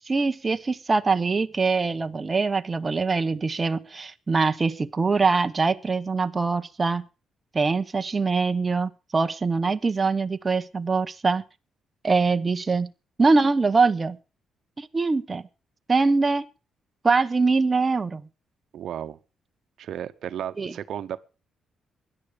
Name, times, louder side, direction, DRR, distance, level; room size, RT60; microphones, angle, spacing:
voice 1, 0.1-7.0 7.5-11.4 12.0-12.9 13.2-14.2 14.8-15.4 15.9-16.5 17.0-18.3 20.6-20.7, right 4 dB, 25° right, 0.9 m, -23 dB
voice 2, 18.7-19.2 19.8-21.2, right 10 dB, 70° right, 1.0 m, -34 dB
16.5 x 11.0 x 5.1 m
cardioid pair, 115°, 0 cm